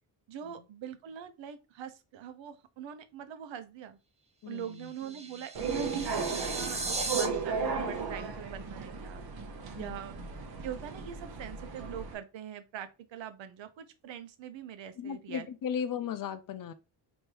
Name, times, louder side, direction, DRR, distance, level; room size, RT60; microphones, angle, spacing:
voice 1, 0.3-4.0 4.5-9.2 9.7-10.2 10.6-15.5, right 9 dB, 85° right, 0.8 m, -43 dB
voice 2, 4.4-4.9 9.8-10.0 15.0-16.7, left 7 dB, 50° left, 0.5 m, -36 dB
sound 1, 4.6-7.3, right 3 dB, 15° right, 0.5 m, -36 dB
sound 2, 5.5-12.1, right 5 dB, 60° right, 0.9 m, -35 dB
3.2 x 2.6 x 4.5 m
wide cardioid pair, 165°, 44 cm